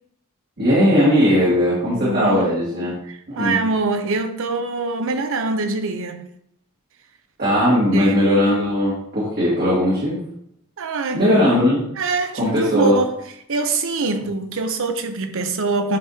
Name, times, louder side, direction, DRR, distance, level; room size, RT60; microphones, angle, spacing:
voice 1, 0.6-2.9 3.3-3.6 7.4-10.2 11.1-11.8 12.3-13.0, equal, 45° right, 2.0 m, -18 dB
voice 2, 1.9-2.5 3.1-6.3 7.9-8.2 10.8-11.2 12.0-13.2 13.5-16.0, right 3 dB, 65° right, 0.7 m, -24 dB
10.5 x 3.5 x 2.8 m
head